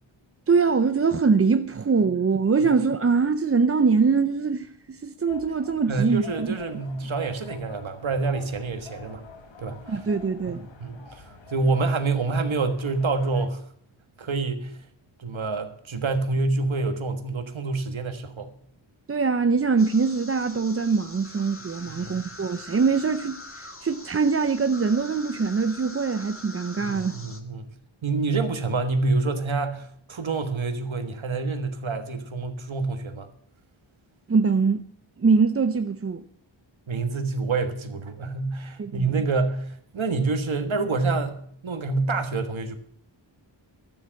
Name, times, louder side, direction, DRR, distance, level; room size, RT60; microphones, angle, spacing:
voice 1, 0.5-6.6 9.9-10.7 19.1-27.2 34.3-34.8 35.2-36.2 38.8-39.1, right 5 dB, 30° right, 0.5 m, -23 dB
sound 1, 5.3-13.5, left 5 dB, 65° left, 1.5 m, -46 dB
voice 2, 5.9-9.2 9.6-9.8 10.8-13.6 14.2-14.7 15.2-18.5 21.9-22.2 26.8-27.6 28.0-33.3 36.9-42.8, right 3 dB, 75° right, 1.5 m, -27 dB
sound 2, 19.8-27.4, left 2 dB, 25° left, 1.6 m, -43 dB
12.5 x 7.6 x 8.8 m
wide cardioid pair, 70°, 48 cm